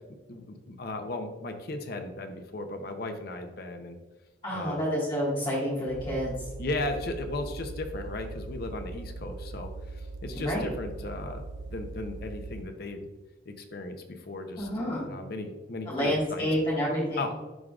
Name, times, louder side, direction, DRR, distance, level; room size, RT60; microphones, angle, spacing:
voice 1, 0.3-4.0 4.5-4.8 6.6-13.1 13.5-14.7 15.0-16.4 17.2-17.3, left 2 dB, 55° left, 6 dB, 0.7 m, -36 dB
voice 2, 4.4-6.3 10.4-10.7 14.6-15.1 15.9-17.2, equal, 30° left, -8 dB, 1.7 m, -28 dB
sound 1, 5.9-12.8, right 3 dB, 80° right, 0.5 m, -40 dB
11.0 x 3.7 x 2.4 m, 1.2 s
head